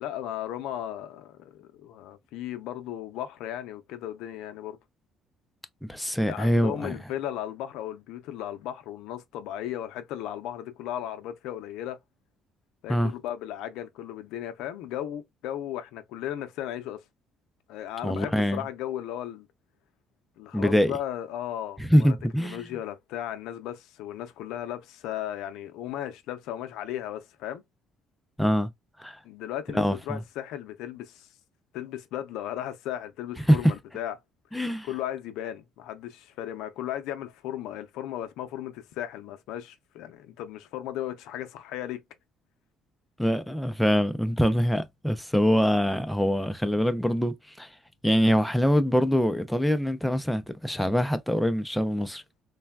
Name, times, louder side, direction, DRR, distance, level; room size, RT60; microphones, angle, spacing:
voice 1, 0.0-4.8 6.2-12.0 12.8-17.0 17.7-19.5 20.4-27.6 29.2-31.3 31.7-34.1 34.8-42.0, left 11 dB, 85° left, 0.5 m, -36 dB
voice 2, 5.8-7.0 12.9-13.1 18.0-18.6 20.5-20.9 21.8-22.6 28.4-28.7 29.0-29.2 29.7-30.2 33.5-33.6 34.5-34.9 43.2-47.7 48.0-52.2, equal, ahead, 0.4 m, -24 dB
3.2 x 2.2 x 2.2 m
cardioid pair, 110°, 0 cm